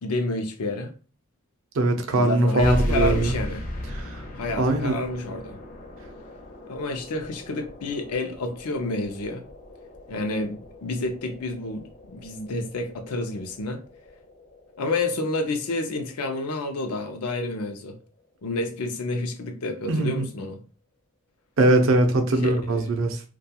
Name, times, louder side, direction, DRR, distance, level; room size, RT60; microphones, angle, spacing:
voice 1, 0.0-0.9 2.1-3.6 4.4-5.6 6.7-9.4 10.1-13.8 14.8-18.0 18.4-20.6 22.4-22.6, left 2 dB, 90° left, 0.5 m, -29 dB
voice 2, 1.7-3.3 3.9-4.2 4.6-5.0 19.9-20.3 21.6-23.2, right 2 dB, 60° right, 0.5 m, -21 dB
sound 1, 2.6-17.7, left 1 dB, 35° left, 0.5 m, -36 dB
2.3 x 2.2 x 2.7 m
head